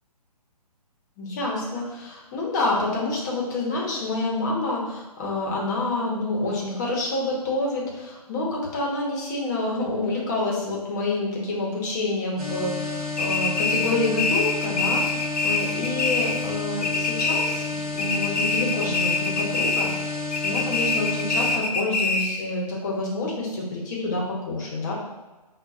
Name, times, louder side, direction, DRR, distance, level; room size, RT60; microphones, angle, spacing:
voice 1, 1.2-17.6 17.9-19.9 20.4-24.9, left 2 dB, 25° left, -4 dB, 0.8 m, -28 dB
sound 1, 12.4-21.6, left 3 dB, 65° right, 1.1 m, -31 dB
sound 2, 13.2-16.5 16.8-17.7 18.0-20.0 20.3-22.5, left 3 dB, 80° left, 0.6 m, -25 dB
5.2 x 2.2 x 2.4 m, 1.2 s
hypercardioid pair, 150°, 20 cm